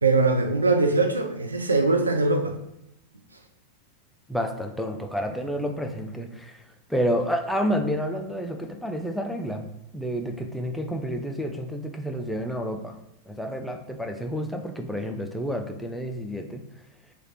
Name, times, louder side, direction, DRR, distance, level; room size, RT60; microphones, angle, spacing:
voice 1, 0.0-2.6, right 3 dB, 80° right, 6 dB, 0.4 m, -22 dB
voice 2, 4.3-6.6 6.9-13.0 13.3-16.6, equal, ahead, 4 dB, 0.4 m, -29 dB
3.2 x 2.4 x 4.2 m, 0.83 s
figure-of-eight pair, 90°, 0 cm